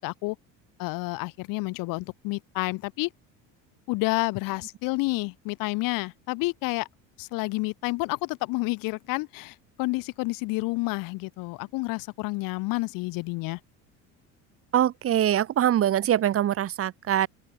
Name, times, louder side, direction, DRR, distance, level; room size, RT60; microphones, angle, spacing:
voice 1, 0.0-0.4 0.8-3.1 3.9-6.9 7.2-13.6, left 24 dB, 70° left, 7.4 m, -29 dB
voice 2, 14.7-17.3, right 11 dB, 40° right, 3.5 m, -23 dB
open air
cardioid pair, 135°, 34 cm